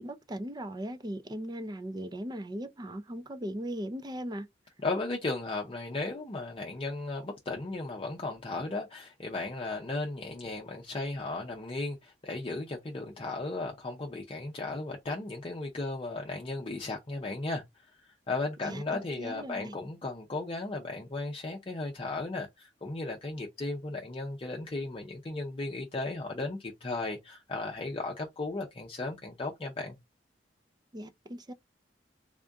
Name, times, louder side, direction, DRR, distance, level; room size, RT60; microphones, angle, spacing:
voice 1, 0.0-4.5 18.6-19.7 30.9-31.5, right 1 dB, 25° right, 0.5 m, -38 dB
voice 2, 4.8-30.0, left 2 dB, 30° left, 0.6 m, -35 dB
3.5 x 2.6 x 3.4 m
head